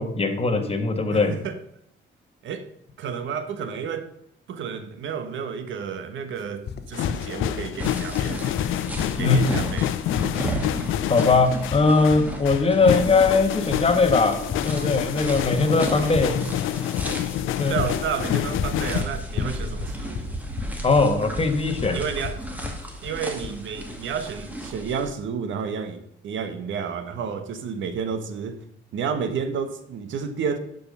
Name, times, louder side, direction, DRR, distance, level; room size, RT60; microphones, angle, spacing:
voice 1, 0.0-1.3 9.2-9.5 11.1-16.5 17.6-17.7 20.8-22.0, left 3 dB, 30° left, 1.4 m, -20 dB
voice 2, 1.1-1.6 2.4-2.7 3.0-4.1 4.5-8.7 9.2-9.9 17.7-20.3 21.9-22.5 23.0-28.6 28.9-30.6, right 6 dB, 75° right, 1.2 m, -31 dB
sound 1, 6.7-23.6, left 7 dB, 55° left, 0.8 m, -33 dB
sound 2, 6.9-19.0, left 12 dB, 85° left, 0.6 m, -28 dB
sound 3, 7.8-25.1, right 1 dB, 10° right, 2.1 m, -34 dB
11.5 x 5.4 x 5.4 m
cardioid pair, 90°, 20 cm